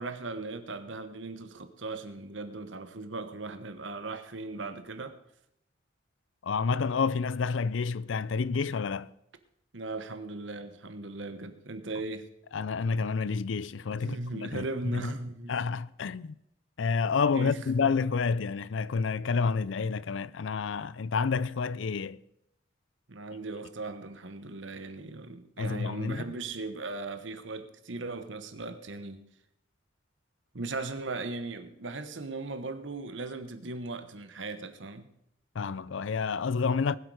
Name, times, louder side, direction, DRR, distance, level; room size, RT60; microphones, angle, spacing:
voice 1, 0.0-5.2 9.7-12.3 13.9-15.5 17.3-17.6 23.1-29.3 30.5-35.1, right 3 dB, 75° right, 1.2 m, -38 dB
voice 2, 6.4-9.1 12.5-14.6 14.9-15.1 15.5-16.4 16.8-22.2 25.6-26.3 35.5-37.0, left 5 dB, 80° left, 0.5 m, -29 dB
19.5 x 8.1 x 4.9 m
head